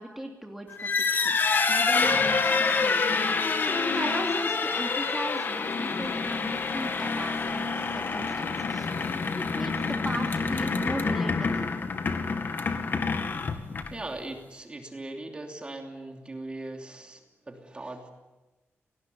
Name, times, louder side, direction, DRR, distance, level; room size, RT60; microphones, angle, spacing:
voice 1, 0.0-1.4 1.7-3.2 3.8-8.9 9.3-11.7, right 1 dB, 5° right, 1 dB, 2.9 m, -37 dB
sound 1, 0.7-14.1, left 4 dB, 45° left, 2.2 m, -27 dB
sound 2, 3.9-9.3, left 6 dB, 85° left, 2.9 m, -45 dB
voice 2, 13.9-18.1, right 2 dB, 20° right, 3 dB, 3.0 m, -39 dB
29.0 x 19.5 x 9.4 m, 1.1 s
wide cardioid pair, 145°, 5 cm